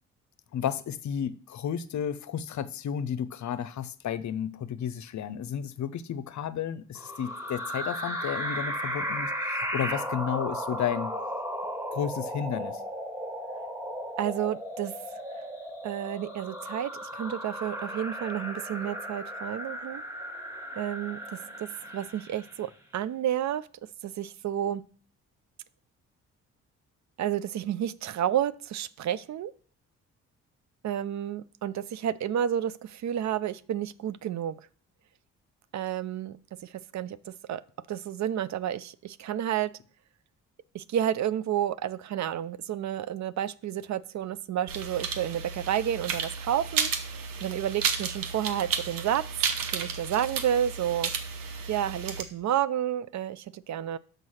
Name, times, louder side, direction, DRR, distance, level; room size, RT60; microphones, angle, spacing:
voice 1, 0.5-11.2 11.9-12.8, left 9 dB, 55° left, 0.7 m, -32 dB
sound 1, 7.0-22.6, equal, 10° right, 1.7 m, -35 dB
voice 2, 14.2-15.5 15.8-20.0 20.8-23.7 24.0-24.8 27.2-29.5 30.8-34.6 35.7-37.6 37.9-39.7 40.7-49.2 49.7-51.1 51.7-54.0, right 10 dB, 50° right, 0.5 m, -31 dB
sound 2, 44.7-52.2, right 6 dB, 65° right, 1.1 m, -32 dB
6.2 x 5.3 x 5.7 m
hypercardioid pair, 50°, 35 cm